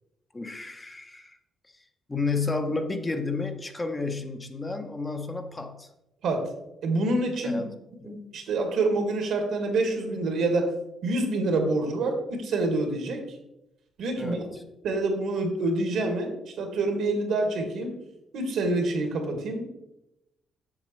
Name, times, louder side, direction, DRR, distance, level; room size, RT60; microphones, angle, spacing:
voice 1, 0.3-1.4 1.6-5.9 7.4-7.7 8.0-8.1 14.2-14.5, left 3 dB, 20° left, 5 dB, 0.8 m, -31 dB
voice 2, 6.8-7.6 8.1-10.7 11.0-13.4 14.0-14.5 14.8-18.0 18.3-19.7, right 2 dB, 75° right, 3 dB, 1.8 m, -27 dB
7.4 x 6.5 x 3.2 m, 0.89 s
cardioid pair, 90°, 0 cm